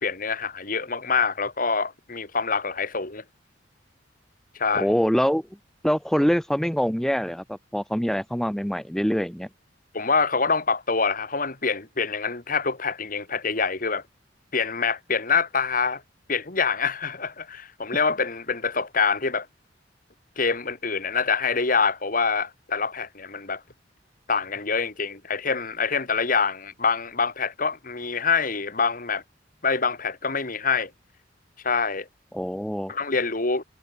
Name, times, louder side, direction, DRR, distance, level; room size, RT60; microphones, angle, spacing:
voice 1, 0.0-3.2 4.5-4.9 9.9-14.0 14.5-16.0 16.3-19.5 20.4-23.6 24.3-29.2 29.6-30.9 31.6-32.1 32.9-33.6, left 5 dB, 45° left, 2.4 m, -25 dB
voice 2, 4.7-5.4 5.8-9.5 32.3-32.9, equal, ahead, 0.9 m, -24 dB
head